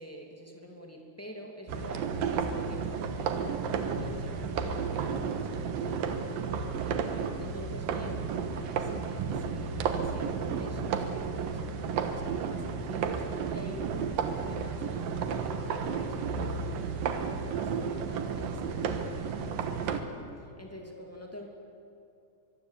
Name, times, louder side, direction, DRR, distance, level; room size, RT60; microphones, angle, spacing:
voice 1, 0.0-20.1 20.4-21.5, left 1 dB, 10° left, 1 dB, 0.8 m, -46 dB
sound 1, 1.7-20.0, right 6 dB, 65° right, 2.4 m, -32 dB
24.0 x 22.5 x 8.4 m, 2.6 s
omnidirectional pair, 5.6 m